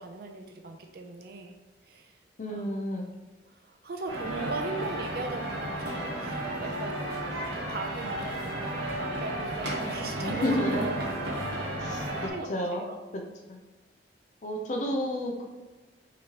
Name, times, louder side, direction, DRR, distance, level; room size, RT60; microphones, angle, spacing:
voice 1, 0.0-1.6 1.9-2.1 2.5-2.7 3.6-7.0 7.7-11.0 11.3-13.0, right 3 dB, 55° right, 4 dB, 0.5 m, -39 dB
voice 2, 2.4-3.1 10.2-10.9 11.8-12.0 12.5-12.8 13.5-13.6 14.4-15.4, left 1 dB, 45° left, 1 dB, 0.5 m, -30 dB
sound 1, 4.1-12.3, right 1 dB, 80° right, 1.3 m, -33 dB
5.8 x 3.0 x 2.9 m, 1.2 s
head